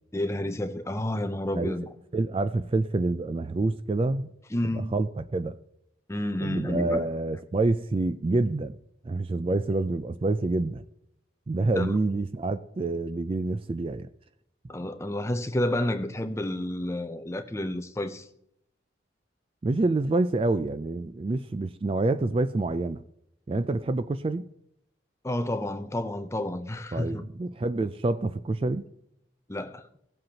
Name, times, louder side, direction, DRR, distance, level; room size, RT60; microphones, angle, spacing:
voice 1, 0.1-1.9 4.5-4.9 6.1-7.0 11.7-12.0 14.7-18.3 25.2-27.2 29.5-29.9, left 1 dB, 15° left, 0.6 m, -30 dB
voice 2, 1.5-4.3 4.7-5.6 6.4-8.8 9.0-10.8 11.5-14.1 19.6-23.0 23.5-24.4 26.9-28.8, right 2 dB, 30° right, 0.3 m, -27 dB
17.5 x 7.7 x 2.9 m
head